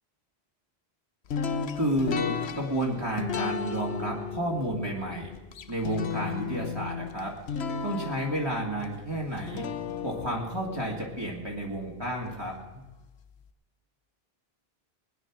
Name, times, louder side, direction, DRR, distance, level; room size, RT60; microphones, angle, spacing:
sound 1, 1.3-12.3, left 6 dB, 80° left, 1.1 m, -35 dB
voice 1, 1.7-5.3 5.7-7.3 7.8-9.7 10.0-12.8, right 1 dB, 25° right, -3 dB, 2.2 m, -31 dB
20.5 x 9.8 x 6.0 m, 1.1 s
omnidirectional pair, 1.1 m